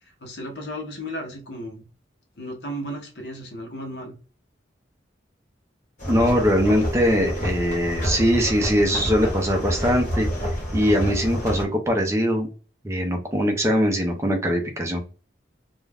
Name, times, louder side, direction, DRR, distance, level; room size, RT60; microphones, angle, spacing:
voice 1, 0.0-1.8 2.4-4.1, equal, 65° left, 1 dB, 0.7 m, -34 dB
sound 1, 6.0-11.6, equal, 40° left, 1.1 m, -28 dB
voice 2, 6.1-10.3 10.7-12.5 12.8-15.0, equal, 15° right, 3 dB, 0.4 m, -21 dB
2.3 x 2.1 x 3.3 m, 0.37 s
head